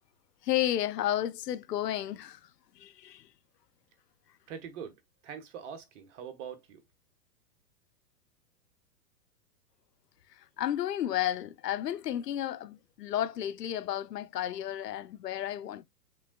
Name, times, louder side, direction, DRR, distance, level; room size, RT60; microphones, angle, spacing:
voice 1, 0.4-2.4 2.8-3.3 10.4-15.8, left 12 dB, 75° left, 0.6 m, -32 dB
voice 2, 4.5-6.8, right 7 dB, 50° right, 1.4 m, -43 dB
6.1 x 3.4 x 2.3 m
figure-of-eight pair, 110°, 48 cm